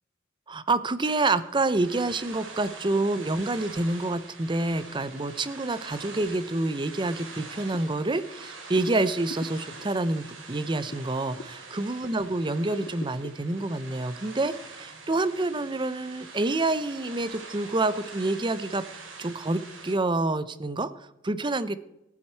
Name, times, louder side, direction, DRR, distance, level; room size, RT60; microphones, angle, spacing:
voice 1, 0.5-18.8 19.2-21.8, right 2 dB, 25° right, 14 dB, 0.6 m, -28 dB
sound 1, 1.0-20.0, right 4 dB, 75° right, 3.2 m, -44 dB
sound 2, 8.0-12.3 12.7-14.5, left 3 dB, 50° left, 0.6 m, -46 dB
14.5 x 11.0 x 4.5 m, 0.88 s
head